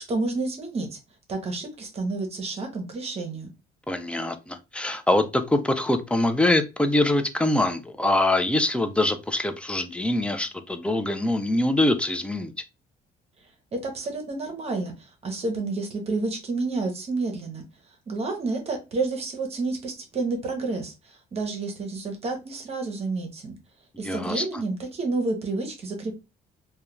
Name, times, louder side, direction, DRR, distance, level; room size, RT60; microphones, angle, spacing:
voice 1, 0.1-1.0 1.3-3.5 13.7-17.6 18.1-23.5 24.0-26.2, right 3 dB, 40° right, 0.7 m, -30 dB
voice 2, 3.9-12.5 24.0-24.4, left 1 dB, 5° left, 0.3 m, -24 dB
2.3 x 2.2 x 3.0 m
cardioid pair, 110°, 17 cm